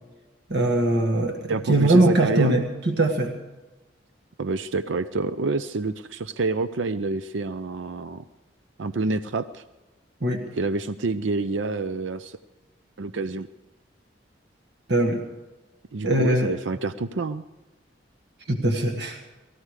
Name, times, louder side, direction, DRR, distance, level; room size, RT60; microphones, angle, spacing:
voice 1, 0.5-3.3 10.2-10.4 14.9-15.2 16.0-16.5 18.5-19.2, right 1 dB, 65° right, 3 dB, 1.7 m, -21 dB
voice 2, 1.5-2.6 4.4-8.2 8.8-9.6 10.5-12.4 13.0-13.5 15.9-17.4, right 3 dB, 85° right, 12 dB, 0.6 m, -28 dB
19.5 x 15.0 x 4.9 m, 1.1 s
head